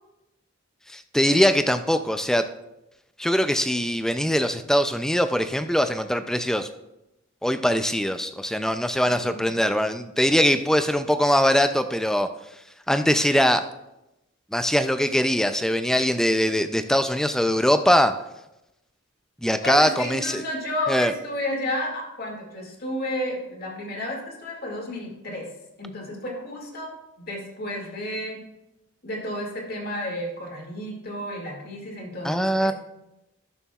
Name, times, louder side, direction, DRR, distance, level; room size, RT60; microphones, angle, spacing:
voice 1, 0.9-2.5 3.2-6.7 7.4-12.3 12.9-13.6 14.5-18.2 19.4-20.4 20.9-21.1 32.2-32.7, equal, ahead, 9 dB, 0.4 m, -22 dB
voice 2, 9.0-9.5 19.6-25.5 25.8-28.4 29.0-32.7, left 1 dB, 45° left, -1 dB, 2.2 m, -32 dB
18.0 x 6.9 x 2.4 m, 0.93 s
head